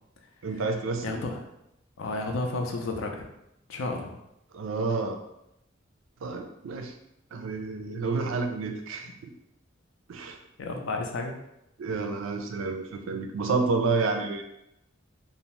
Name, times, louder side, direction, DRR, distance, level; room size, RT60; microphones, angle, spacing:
voice 1, 0.4-1.2 4.5-5.2 6.2-6.9 7.3-9.3 10.1-10.4 11.8-14.4, right 4 dB, 80° right, 5 dB, 0.4 m, -29 dB
voice 2, 1.0-1.4 2.0-3.2 3.7-4.2 10.6-11.3, left 2 dB, 80° left, 3 dB, 0.5 m, -32 dB
2.6 x 2.0 x 3.0 m, 0.82 s
head